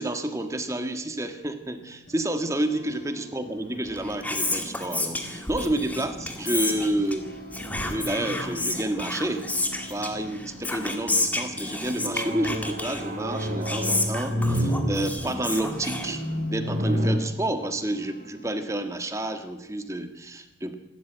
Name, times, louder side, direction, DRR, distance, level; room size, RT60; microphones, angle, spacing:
voice 1, 0.0-7.3 7.8-9.4 9.9-16.2 16.5-20.7, right 1 dB, 15° right, 7 dB, 1.6 m, -29 dB
sound 1, 1.8-18.7, right 1 dB, 45° left, 7.4 m, -46 dB
Whispering, 3.8-16.6, left 2 dB, 10° left, 2.1 m, -31 dB
sound 2, 7.7-9.5 10.1-10.5 11.3-17.2, equal, 50° right, 2.8 m, -30 dB
26.5 x 13.0 x 9.0 m, 1.1 s
head